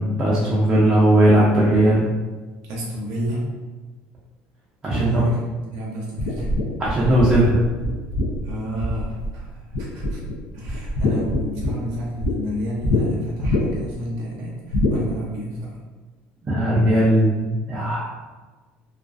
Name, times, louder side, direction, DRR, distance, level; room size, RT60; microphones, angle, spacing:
voice 1, 0.0-2.1 4.8-5.2 6.8-7.6 16.5-18.0, right 1 dB, 20° right, -8 dB, 0.4 m, -18 dB
voice 2, 2.6-3.5 4.9-5.4 5.7-6.5 8.4-10.2 10.5-15.8, equal, 75° right, -4 dB, 0.6 m, -30 dB
sound 1, 6.2-9.4 9.7-10.3 10.6-12.3 12.8-13.0 13.4-13.9 14.7-15.0, left 1 dB, 85° left, 0.4 m, -23 dB
2.3 x 2.3 x 2.4 m, 1.3 s
cardioid pair, 165°, 4 cm